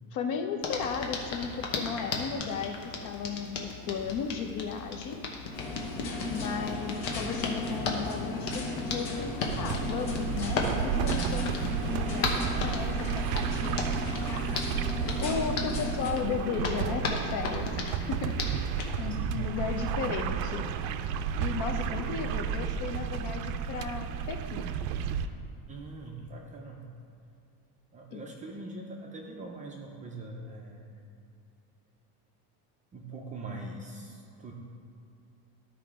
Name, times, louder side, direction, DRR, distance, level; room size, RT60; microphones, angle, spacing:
voice 1, 0.1-5.2 6.3-13.8 15.2-18.7 19.0-20.6 21.4-24.8 28.1-28.2, left 6 dB, 45° left, 5 dB, 0.7 m, -35 dB
Hands, 0.6-18.9, left 3 dB, 85° left, 1.3 m, -36 dB
sound 1, 5.5-16.1, left 2 dB, 65° left, 1.5 m, -36 dB
sound 2, 9.5-25.3, right 8 dB, 90° right, 0.5 m, -32 dB
voice 2, 25.7-26.8 27.9-31.0 32.9-34.5, right 2 dB, 20° right, -1 dB, 0.4 m, -42 dB
12.5 x 4.8 x 3.6 m, 2.7 s
cardioid pair, 165°, 41 cm